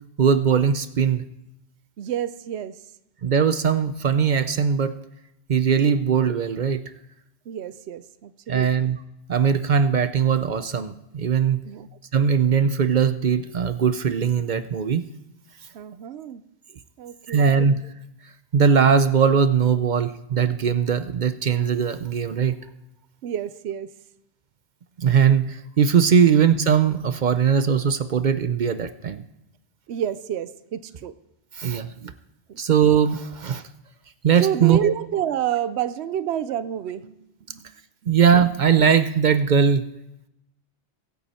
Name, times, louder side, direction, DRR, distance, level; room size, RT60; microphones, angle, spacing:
voice 1, 0.2-1.2 3.2-5.0 5.5-6.8 8.5-9.0 9.3-11.6 12.1-15.0 17.3-17.8 18.5-22.6 25.0-29.2 31.6-32.1 32.6-33.6 34.2-34.8 38.1-39.9, right 7 dB, 50° right, 12 dB, 0.6 m, -20 dB
voice 2, 2.0-2.8 7.5-8.7 11.6-11.9 15.7-16.4 17.0-17.7 23.2-23.9 29.9-31.1 32.5-32.6 34.4-37.7, right 10 dB, 80° right, 14 dB, 0.9 m, -29 dB
23.0 x 8.3 x 4.3 m, 0.86 s
omnidirectional pair, 1.1 m